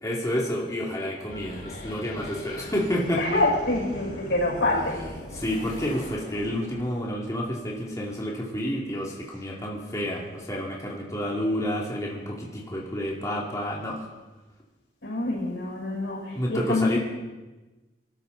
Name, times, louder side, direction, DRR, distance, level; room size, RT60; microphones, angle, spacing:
voice 1, 0.0-3.4 5.3-14.1 16.3-17.0, equal, 20° left, -3 dB, 2.5 m, -29 dB
sound 1, 1.3-7.5 9.3-14.2, left 1 dB, 50° left, 4.7 m, -43 dB
voice 2, 3.2-5.0 15.0-17.0, left 2 dB, 85° left, -2 dB, 5.9 m, -26 dB
26.0 x 13.0 x 4.0 m, 1.1 s
head